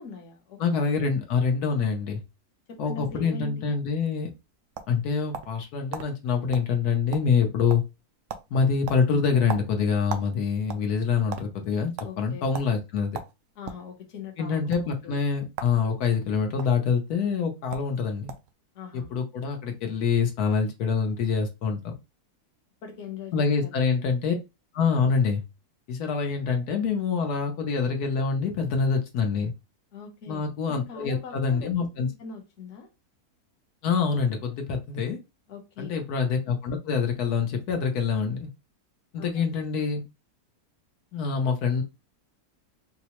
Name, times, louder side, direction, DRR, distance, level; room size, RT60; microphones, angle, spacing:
voice 1, 0.0-0.9 2.7-3.7 12.0-12.5 13.5-15.2 18.7-19.1 22.8-23.7 29.9-31.7 32.2-32.9 35.5-35.9 39.2-39.3, left 5 dB, 60° left, 1.1 m, -42 dB
voice 2, 0.6-2.2 2.8-4.3 4.9-7.8 8.5-13.2 14.4-18.3 18.9-21.9 23.3-24.3 24.7-25.4 25.9-29.5 30.3-32.1 33.8-35.2 35.8-38.5 39.1-40.0 41.1-41.8, left 5 dB, 80° left, 1.2 m, -25 dB
sound 1, 4.2-5.6 5.9-6.1 6.5-6.7 7.0-7.4 7.7-8.0 8.3-8.5 8.9-10.3 10.6-11.5 12.0-12.1 12.5-12.7 13.1-13.9 14.6-14.8 15.5-15.8 16.1-16.7 17.4-17.5 17.7-17.9 18.3-18.5, right 7 dB, 70° right, 0.8 m, -36 dB
4.5 x 2.1 x 2.9 m
omnidirectional pair, 1.6 m